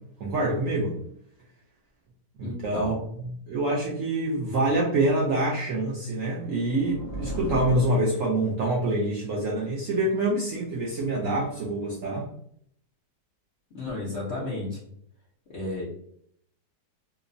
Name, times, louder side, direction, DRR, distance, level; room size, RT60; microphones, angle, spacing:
voice 1, 0.2-0.9 2.4-12.3, right 2 dB, 70° right, -4 dB, 0.7 m, -26 dB
voice 2, 2.4-3.0 13.7-14.8 15.5-15.9, left 2 dB, 65° left, -6 dB, 0.6 m, -32 dB
sound 1, 6.1-8.8, equal, 45° left, 1.1 m, -37 dB
2.9 x 2.0 x 2.5 m, 0.68 s
omnidirectional pair, 1.9 m